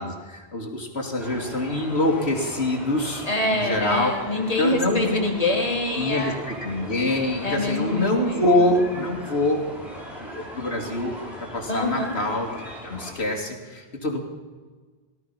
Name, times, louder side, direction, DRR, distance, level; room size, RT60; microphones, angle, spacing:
voice 1, 0.0-4.1 4.6-5.2 6.0-9.6 10.2-11.1 11.5-14.2, left 1 dB, 75° left, 1 dB, 2.8 m, -25 dB
sound 1, 1.2-13.1, equal, ahead, 3.9 m, -39 dB
voice 2, 3.2-6.4 7.4-8.4 11.7-12.1, left 1 dB, 35° left, 1 dB, 2.6 m, -25 dB
18.0 x 12.5 x 5.8 m, 1.4 s
omnidirectional pair, 1.1 m